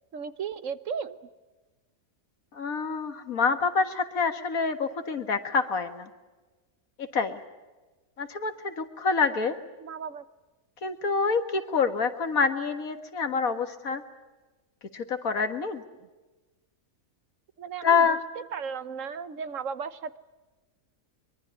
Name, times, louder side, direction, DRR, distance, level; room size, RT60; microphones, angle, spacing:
voice 1, 0.1-1.2 9.8-10.2 17.6-18.2 18.5-20.2, right 6 dB, 65° right, 13 dB, 1.3 m, -35 dB
voice 2, 2.5-6.1 7.0-7.4 8.2-9.6 10.8-14.0 14.9-15.8 17.8-18.2, left 5 dB, 70° left, 8 dB, 2.1 m, -27 dB
24.0 x 22.5 x 8.4 m, 1.2 s
omnidirectional pair, 1.5 m